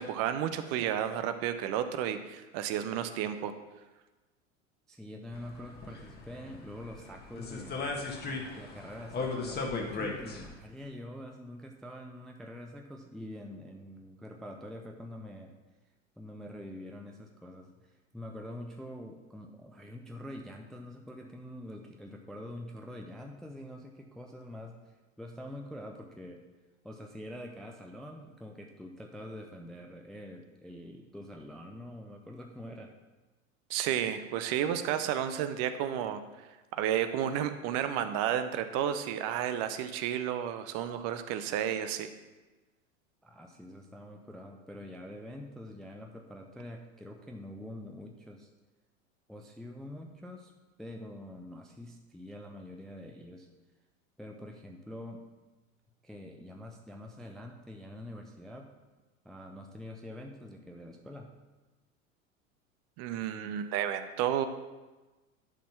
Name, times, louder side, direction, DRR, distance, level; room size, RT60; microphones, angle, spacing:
voice 1, 0.0-3.5 33.7-36.2 36.7-42.1 63.0-64.5, right 10 dB, 40° right, 10 dB, 0.7 m, -31 dB
voice 2, 4.9-15.6 16.2-26.4 26.8-32.9 43.2-48.5 49.3-50.5 50.8-53.5 54.2-55.3 56.0-58.7 59.2-61.3, left 1 dB, ahead, 2 dB, 0.4 m, -45 dB
sound 1, 5.3-10.5, left 3 dB, 25° left, 1.4 m, -37 dB
11.0 x 4.3 x 5.7 m, 1.2 s
figure-of-eight pair, 80°, 41 cm